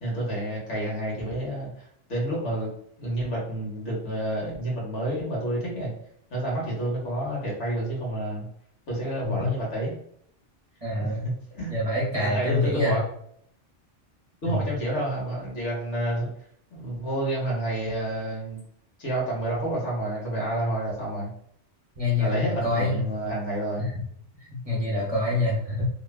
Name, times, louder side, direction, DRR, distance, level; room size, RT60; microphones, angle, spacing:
voice 1, 0.0-2.7 3.0-5.9 6.3-8.5 8.9-9.9 11.0-11.8 12.1-13.0 14.4-16.3 16.7-18.6 19.0-21.3 22.2-23.8, right 1 dB, 75° left, -4 dB, 1.4 m, -29 dB
voice 2, 10.8-11.2 11.7-13.0 14.4-14.7 22.0-23.0 24.5-25.8, left 2 dB, 35° right, -6 dB, 0.7 m, -26 dB
3.0 x 2.2 x 2.3 m, 0.67 s
omnidirectional pair, 1.2 m